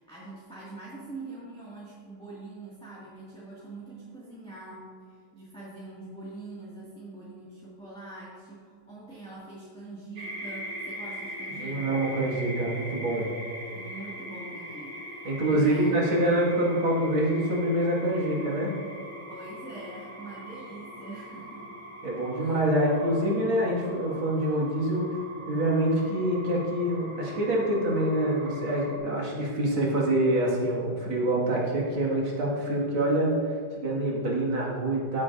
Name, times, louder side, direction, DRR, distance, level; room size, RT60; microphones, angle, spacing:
voice 1, 0.0-12.1 13.7-16.0 19.3-21.8 22.3-22.6, right 2 dB, 5° left, -9 dB, 1.7 m, -44 dB
sound 1, 10.2-29.0, equal, 35° right, 1.6 m, -41 dB
voice 2, 11.6-13.3 15.2-18.7 22.0-25.2 25.5-35.2, right 1 dB, 70° right, -4 dB, 2.8 m, -26 dB
15.0 x 8.5 x 2.6 m, 2.2 s
omnidirectional pair, 2.3 m